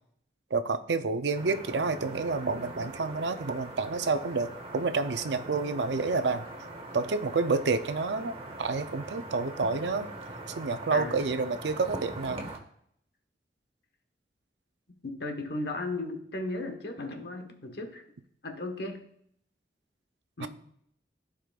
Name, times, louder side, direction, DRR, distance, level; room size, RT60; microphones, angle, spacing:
voice 1, 0.5-6.5 6.9-10.1 10.6-12.5 20.4-20.5, right 4 dB, 90° right, 10 dB, 0.6 m, -29 dB
sound 1, 1.3-12.6, right 2 dB, 35° right, 1.0 m, -42 dB
voice 2, 10.9-11.2 14.9-18.0 18.4-19.0 20.4-20.5, left 2 dB, 70° left, 4 dB, 1.2 m, -35 dB
15.0 x 5.0 x 2.4 m, 0.67 s
head